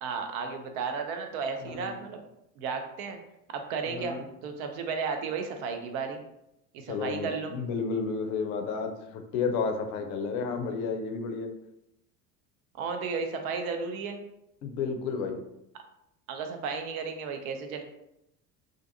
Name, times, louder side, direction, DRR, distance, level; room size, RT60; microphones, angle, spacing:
voice 1, 0.0-2.2 2.6-3.2 3.5-6.2 6.7-7.5 12.7-14.2 16.3-17.8, right 5 dB, 60° right, 6 dB, 0.6 m, -33 dB
voice 2, 1.6-2.0 3.8-4.2 6.9-11.5 14.6-15.4, left 5 dB, 60° left, 5 dB, 0.5 m, -32 dB
2.5 x 2.2 x 2.6 m, 0.83 s
figure-of-eight pair, 70°, 48 cm